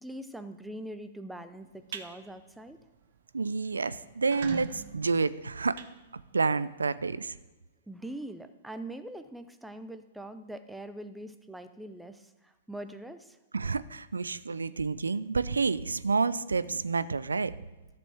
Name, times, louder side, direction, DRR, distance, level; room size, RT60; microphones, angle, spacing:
voice 1, 0.0-2.8 7.9-13.4, right 1 dB, 5° right, 9 dB, 0.6 m, -42 dB
sound 1, 1.6-2.1 2.5-2.8 3.1-3.2 3.5-3.6 4.1-6.6, right 7 dB, 60° right, 0.7 m, -42 dB
voice 2, 3.3-5.8 6.3-7.3 13.5-17.5, right 4 dB, 80° right, 16 dB, 0.4 m, -29 dB
13.0 x 6.8 x 3.4 m, 1.1 s
figure-of-eight pair, 110°, 0 cm